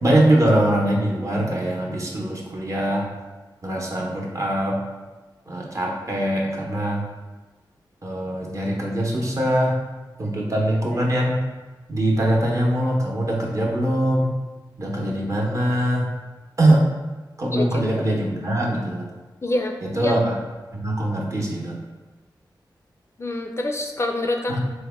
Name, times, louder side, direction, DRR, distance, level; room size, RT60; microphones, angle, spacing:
voice 1, 0.0-3.0 3.6-4.8 5.5-7.0 8.0-9.8 10.2-11.4 11.9-14.4 14.8-16.1 16.6-16.8 17.4-19.1 19.8-20.3 20.7-21.8 24.5-24.6, right 1 dB, 40° right, -1 dB, 0.8 m, -22 dB
voice 2, 17.5-18.1 19.4-20.2 23.2-24.6, left 2 dB, 35° left, 4 dB, 0.3 m, -26 dB
4.0 x 2.1 x 3.4 m, 1.2 s
wide cardioid pair, 70°, 8 cm